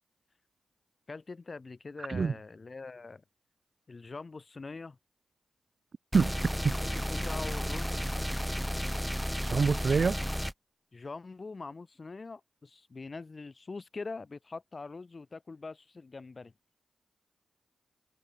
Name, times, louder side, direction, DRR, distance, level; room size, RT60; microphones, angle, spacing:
voice 1, 1.1-3.2 3.9-5.0 6.7-8.0 10.9-16.5, left 3 dB, 45° left, 7.7 m, -43 dB
sound 1, 6.1-10.5, equal, ahead, 1.2 m, -33 dB
voice 2, 9.5-10.2, right 5 dB, 55° right, 0.6 m, -25 dB
supercardioid pair, 45°, 0 cm